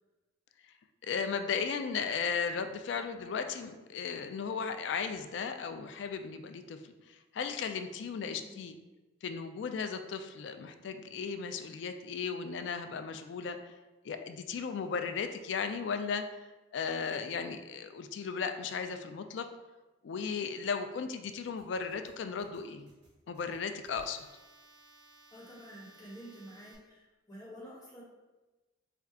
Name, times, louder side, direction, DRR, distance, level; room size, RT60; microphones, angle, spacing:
voice 1, 1.0-8.7 9.2-13.7 14.0-16.2 16.7-19.5 20.0-22.9 23.3-24.2, left 5 dB, 65° left, 8 dB, 0.3 m, -36 dB
voice 2, 8.1-8.6 25.3-28.0, equal, 20° left, -7 dB, 1.3 m, -49 dB
sound 1, 21.6-26.8, right 2 dB, 60° right, 1.5 m, -60 dB
4.3 x 2.3 x 3.6 m, 1.1 s
head